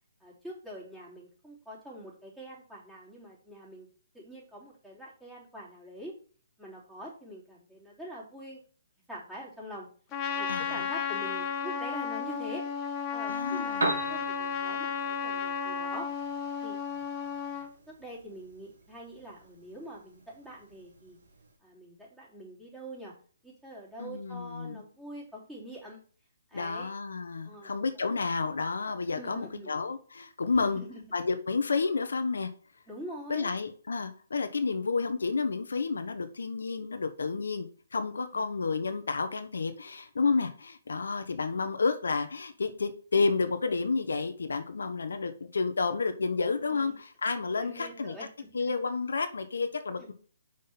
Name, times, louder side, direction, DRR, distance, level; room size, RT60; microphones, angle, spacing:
voice 1, 0.2-3.9 4.1-6.2 6.6-8.6 9.1-9.9 10.3-12.7 13.1-16.1 16.6-16.8 17.9-21.2 21.6-23.1 23.4-26.0 26.5-26.9 27.5-27.7 29.1-29.9 30.6-31.0 32.9-33.5 38.3-38.4 46.7-46.9 47.6-48.7 50.0-50.1, right 1 dB, 5° right, -7 dB, 3.5 m, -45 dB
Trumpet, 10.1-17.7, left 6 dB, 20° left, 1.3 m, -33 dB
voice 2, 10.5-10.9 13.3-13.9 24.0-24.8 26.5-30.8 31.1-32.5 33.3-48.1 48.5-50.1, left 4 dB, 80° left, 8 dB, 0.9 m, -30 dB
Piano, 13.6-21.6, right 2 dB, 75° right, 2.3 m, -40 dB
5.8 x 5.0 x 5.7 m, 0.43 s
hypercardioid pair, 145°, 0 cm